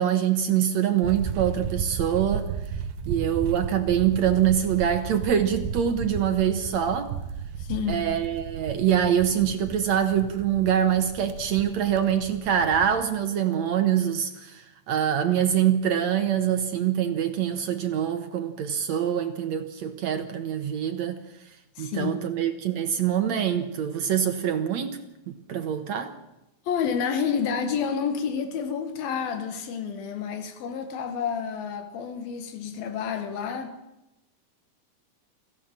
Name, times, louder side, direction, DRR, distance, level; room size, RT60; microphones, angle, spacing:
voice 1, 0.0-2.5 3.1-7.1 7.9-21.2 21.8-25.0 25.3-26.1, right 9 dB, 65° right, 2.1 m, -24 dB
sound 1, 1.0-13.0, right 7 dB, 80° right, 2.7 m, -34 dB
voice 2, 7.6-8.1 21.8-22.2 26.7-33.8, left 7 dB, 90° left, 3.5 m, -29 dB
26.0 x 16.0 x 7.4 m
omnidirectional pair, 4.1 m